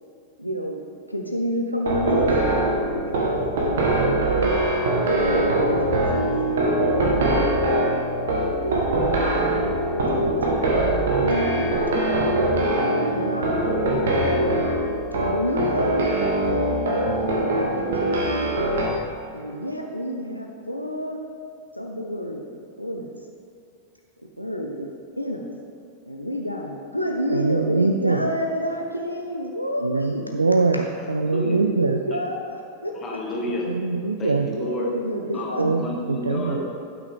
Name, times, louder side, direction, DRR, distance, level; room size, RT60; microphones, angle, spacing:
voice 1, 0.4-3.5 4.0-4.6 4.9-10.6 11.1-11.7 12.2-12.8 13.1-13.8 14.2-14.6 15.1-18.7 19.3-21.2 21.7-22.4 22.8-23.1 24.4-24.9 25.2-25.5 26.1-30.3 30.7-30.8 31.3-33.2 34.6-35.6, equal, 90° left, 1 dB, 0.5 m, -29 dB
sound 1, 1.8-18.9, right 1 dB, 60° right, 1.2 m, -22 dB
voice 2, 27.3-28.3 29.8-32.0 33.7-34.5 35.6-36.6, right 3 dB, 80° right, 6 dB, 0.3 m, -23 dB
voice 3, 33.0-33.7 34.2-34.9 35.3-36.7, left 1 dB, 20° left, -3 dB, 1.9 m, -30 dB
11.5 x 6.0 x 3.5 m, 2.5 s
figure-of-eight pair, 90°, 0 cm